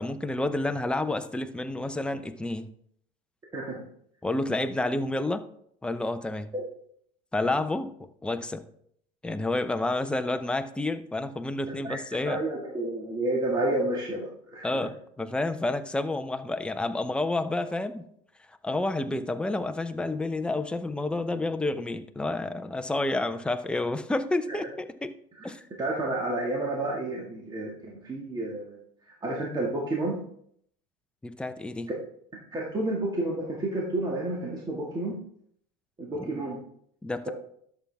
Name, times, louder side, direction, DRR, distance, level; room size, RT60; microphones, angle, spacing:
voice 1, 0.0-2.7 4.2-5.4 5.8-6.5 7.3-7.9 8.2-8.6 9.2-12.4 14.6-18.0 18.5-25.1 25.4-25.7 31.2-31.9 36.2-36.4 37.0-37.3, left 2 dB, 5° left, 8 dB, 0.7 m, -29 dB
voice 2, 3.5-3.8 6.5-6.6 11.7-12.0 12.3-14.8 25.4-25.5 25.8-28.8 29.1-30.2 32.5-35.1 36.0-36.6 37.3-37.4, right 1 dB, 25° right, -3 dB, 1.9 m, -30 dB
11.0 x 7.1 x 3.5 m, 0.67 s
supercardioid pair, 120°, 17 cm